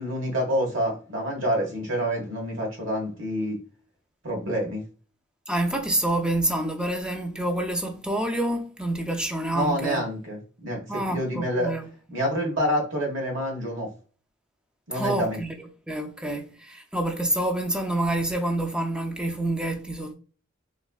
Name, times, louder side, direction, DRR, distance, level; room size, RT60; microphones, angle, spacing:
voice 1, 0.0-3.6 4.2-4.8 9.5-11.7 12.1-13.9 14.9-15.4, equal, 70° right, 1.5 m, -27 dB
voice 2, 5.5-10.0 10.9-11.9 14.9-15.5 15.9-20.1, right 1 dB, 5° right, 0.5 m, -27 dB
3.5 x 3.1 x 2.3 m
head